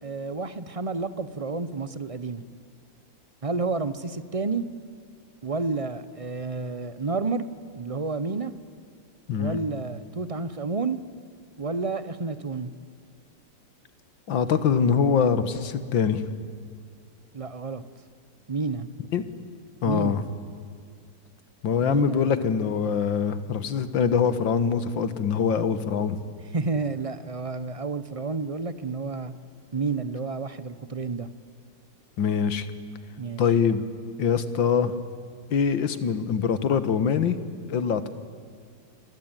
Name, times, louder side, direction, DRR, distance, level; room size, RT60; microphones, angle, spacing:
voice 1, 0.0-2.4 3.4-4.6 5.4-7.5 7.7-8.5 9.3-11.0 11.6-12.7 17.3-17.8 18.5-18.9 19.8-20.2 21.8-22.4 26.5-29.3 29.7-31.3 33.2-33.4, right 4 dB, 30° right, 14 dB, 0.6 m, -30 dB
voice 2, 14.3-16.2 19.1-19.2 19.8-20.2 21.6-26.2 32.2-32.7 33.4-33.8 34.2-34.9 35.5-37.4 37.7-38.1, left 6 dB, 85° left, 13 dB, 2.1 m, -23 dB
29.0 x 22.0 x 9.1 m, 2.2 s
omnidirectional pair, 2.0 m